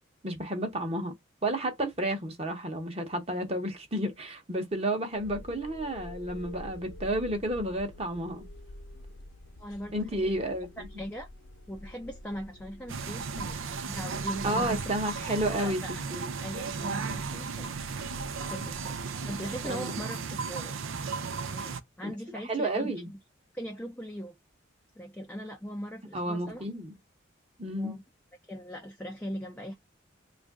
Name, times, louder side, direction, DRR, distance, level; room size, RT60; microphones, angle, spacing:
voice 1, 0.2-1.1 1.4-8.5 9.9-10.9 14.4-15.8 16.1-16.3 19.6-19.9 22.5-23.1 26.1-26.9 27.6-28.0, right 1 dB, 30° right, 0.9 m, -31 dB
sound 1, 5.1-19.6, left 1 dB, 80° left, 0.8 m, -48 dB
voice 2, 9.6-10.3 10.8-11.3 11.7-13.6 13.9-14.8 15.3-15.9 16.4-17.7 18.4-20.8 21.5-21.7 22.0-22.9 23.5-24.3 25.0-26.6 27.8-28.0 28.4-29.7, equal, 5° left, 0.4 m, -40 dB
sound 2, 12.9-21.8, right 5 dB, 80° right, 0.5 m, -35 dB
3.1 x 2.5 x 3.5 m
head